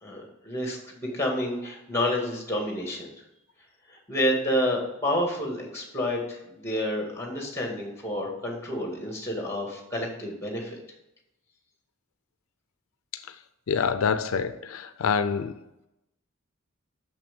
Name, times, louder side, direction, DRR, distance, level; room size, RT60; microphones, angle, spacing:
voice 1, 0.0-3.1 3.9-10.8, left 1 dB, 15° left, 1 dB, 1.9 m, -29 dB
voice 2, 13.7-15.5, left 6 dB, 85° left, 11 dB, 0.5 m, -26 dB
6.5 x 6.0 x 5.3 m, 0.89 s
head